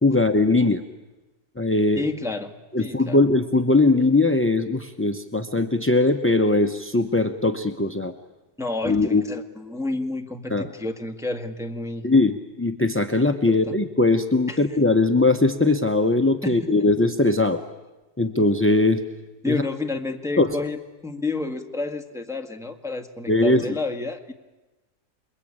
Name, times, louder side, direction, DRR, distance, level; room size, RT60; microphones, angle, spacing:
voice 1, 0.0-0.8 1.6-2.0 2.7-8.1 8.8-9.3 10.5-10.7 12.0-17.6 18.2-19.0 19.5-19.6 20.4-20.6 23.3-23.6, left 2 dB, 15° left, 8 dB, 0.5 m, -20 dB
voice 2, 1.9-3.2 8.6-12.0 13.5-13.8 14.5-14.6 16.4-16.7 19.4-24.3, left 3 dB, ahead, 5 dB, 1.6 m, -30 dB
28.5 x 22.0 x 8.7 m, 1.1 s
omnidirectional pair, 1.7 m